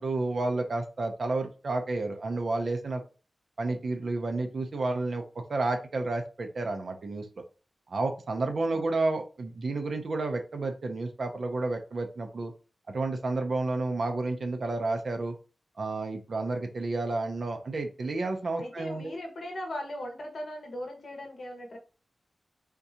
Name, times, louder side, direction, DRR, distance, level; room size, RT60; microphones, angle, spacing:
voice 1, 0.0-3.0 3.6-5.2 5.5-7.3 7.9-12.5 12.9-15.3 15.8-19.1, right 2 dB, 50° right, 4 dB, 0.5 m, -31 dB
voice 2, 8.6-8.9 18.6-21.8, left 1 dB, 60° left, 1 dB, 1.0 m, -39 dB
3.6 x 2.7 x 2.7 m, 0.33 s
wide cardioid pair, 155°, 0 cm